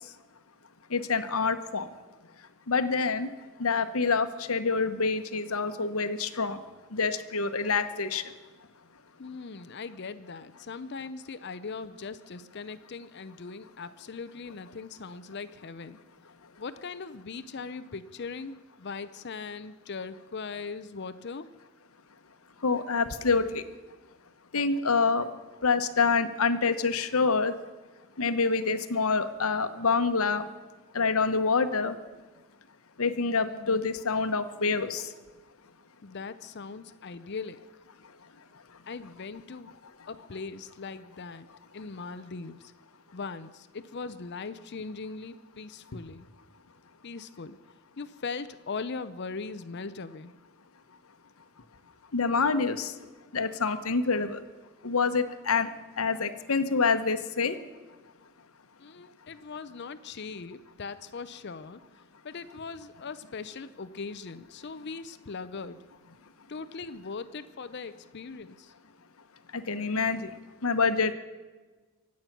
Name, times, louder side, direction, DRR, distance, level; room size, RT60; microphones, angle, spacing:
voice 1, 0.9-1.9 2.7-3.3 3.6-6.6 6.9-8.2 22.6-23.6 24.5-25.3 25.6-27.5 28.2-30.4 30.9-31.9 33.0-35.1 52.1-52.9 53.3-54.4 54.8-55.7 56.0-57.6 69.5-70.3 70.6-71.1, left 4 dB, 70° left, 10 dB, 1.0 m, -26 dB
voice 2, 9.2-16.0 16.6-21.5 33.5-33.8 36.0-37.6 38.9-39.7 40.1-41.5 41.7-42.7 43.1-46.3 47.0-47.6 48.0-50.3 58.8-61.8 62.2-65.9 66.5-68.7, left 4 dB, 50° left, 13 dB, 0.6 m, -40 dB
24.5 x 8.6 x 6.0 m, 1.3 s
head